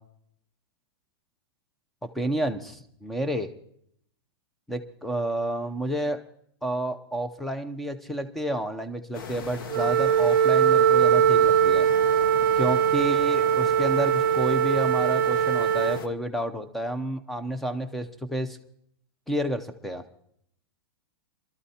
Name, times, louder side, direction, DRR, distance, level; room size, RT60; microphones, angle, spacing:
voice 1, 2.1-3.5 4.7-6.2 6.6-11.9 12.6-18.6 19.3-20.0, right 1 dB, ahead, 9 dB, 0.5 m, -30 dB
sound 1, 9.1-16.1, left 6 dB, 55° left, 1.0 m, -38 dB
Wind instrument woodwind instrument, 9.7-16.0, right 8 dB, 55° right, 0.6 m, -21 dB
24.5 x 13.0 x 2.8 m, 0.69 s
supercardioid pair, 175°, 13 cm